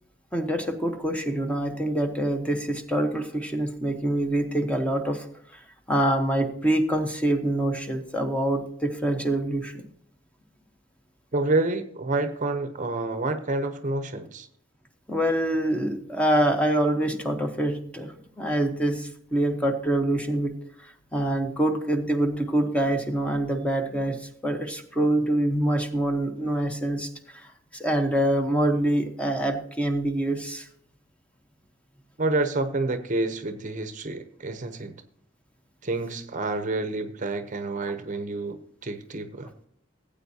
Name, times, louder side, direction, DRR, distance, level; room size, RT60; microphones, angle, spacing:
voice 1, 0.3-9.9 15.1-30.7, right 1 dB, 5° left, 1.0 m, -26 dB
voice 2, 11.3-14.5 32.2-35.0 35.8-39.5, right 2 dB, 40° right, 0.8 m, -28 dB
17.0 x 8.6 x 2.8 m
head